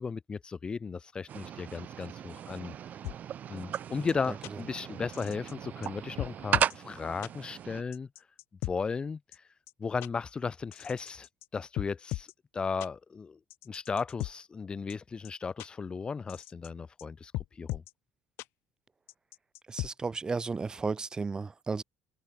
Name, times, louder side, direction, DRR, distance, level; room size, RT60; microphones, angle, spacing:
voice 1, 0.0-2.7 3.5-8.1 8.6-9.4 9.8-12.3 12.5-13.4 13.7-17.8, left 5 dB, 20° left, 3.0 m, -35 dB
sound 1, 1.3-7.8, right 10 dB, 40° right, 1.3 m, -36 dB
sound 2, 3.0-3.2 3.7-3.8 4.1-4.2 4.4-4.5 5.1-5.5 5.8-5.9 6.2-6.7 7.2-7.3 7.9-8.7 9.3-9.4 9.7-9.8 10.0-10.1 10.7-11.5 11.8-12.3 12.8-12.9 13.5-14.3 14.9-15.0 15.2-15.3 15.6-15.7 16.3-16.7 17.0-17.1 17.3-17.9 18.4-18.5 19.1-19.9, left 19 dB, 75° left, 2.5 m, -37 dB
voice 2, 19.7-21.8, right 4 dB, 20° right, 4.4 m, -33 dB
cardioid pair, 145°, 4 cm